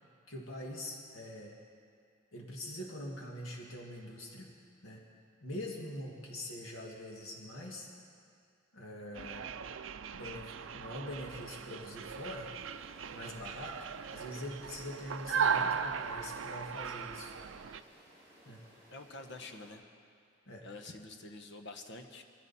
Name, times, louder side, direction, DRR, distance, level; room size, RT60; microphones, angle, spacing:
voice 1, 0.3-1.6 2.3-4.5 4.8-5.0 5.4-7.9 8.7-9.5 10.1-12.5 13.1-13.9 14.1-17.3 18.5-18.6 20.5-20.7, left 1 dB, 75° left, -1 dB, 2.0 m, -44 dB
sound 1, 9.2-17.8, right 6 dB, 65° right, 0.5 m, -37 dB
sound 2, 12.0-19.7, equal, 15° right, 5.4 m, -60 dB
voice 2, 18.9-19.8 20.6-22.2, left 2 dB, 55° left, 5 dB, 1.2 m, -47 dB
23.0 x 15.0 x 4.2 m, 2.3 s
head